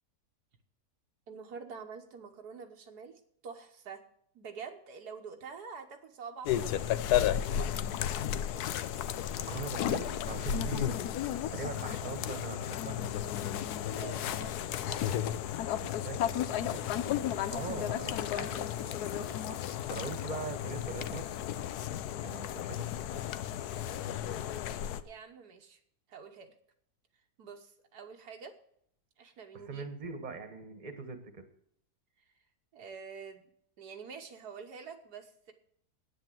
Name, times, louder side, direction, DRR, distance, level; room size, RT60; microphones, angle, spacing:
voice 1, 1.3-4.0 4.4-6.9 13.8-15.2 23.6-24.4 25.0-25.8 26.1-26.5 27.4-28.5 29.2-29.9 32.2-32.3 32.7-33.5 33.8-35.5, right 6 dB, 80° right, 4 dB, 1.7 m, -47 dB
sound 1, 6.4-25.0, left 11 dB, 80° left, 1.2 m, -33 dB
voice 2, 9.4-11.0 11.5-13.1 15.7-16.9 17.5-19.6 19.9-21.2 22.2-22.9 23.1-23.2 29.6-31.4, right 4 dB, 30° right, 8 dB, 1.4 m, -41 dB
10.0 x 9.3 x 7.6 m, 0.67 s
omnidirectional pair, 1.7 m